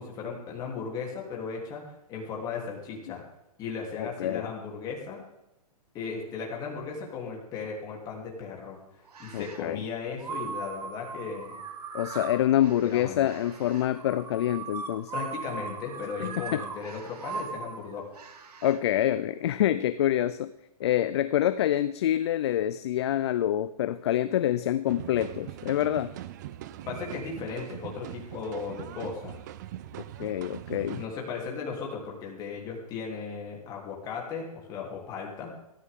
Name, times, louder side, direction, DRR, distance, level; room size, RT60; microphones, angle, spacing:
voice 1, 0.0-1.8 2.1-3.2 3.6-5.2 5.9-8.8 9.2-11.6 12.8-13.3 15.1-18.1 26.8-29.4 31.0-35.5, left 5 dB, 20° left, -1 dB, 3.2 m, -36 dB
voice 2, 4.0-4.5 9.3-9.8 11.9-15.1 16.2-16.6 18.6-20.5 20.8-26.1 30.2-31.0, left 12 dB, 45° left, 13 dB, 0.5 m, -26 dB
sound 1, 9.1-9.7 10.2-18.8, right 5 dB, 80° right, 2.2 m, -39 dB
sound 2, 24.9-31.1, right 13 dB, 30° right, 0.4 m, -41 dB
18.0 x 13.5 x 3.7 m, 0.91 s
hypercardioid pair, 160°, 20 cm